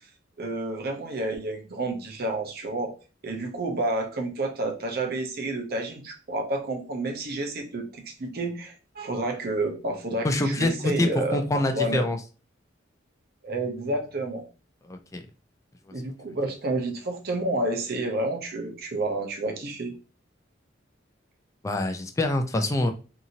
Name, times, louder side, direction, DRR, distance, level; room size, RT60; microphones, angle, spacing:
voice 1, 0.4-2.9 3.2-12.1 13.4-14.4 15.9-19.9, right 2 dB, 50° right, 3 dB, 0.6 m, -30 dB
voice 2, 10.2-12.2 14.9-15.2 21.6-22.9, left 1 dB, 15° left, 6 dB, 0.3 m, -25 dB
2.8 x 2.5 x 2.7 m, 0.34 s
head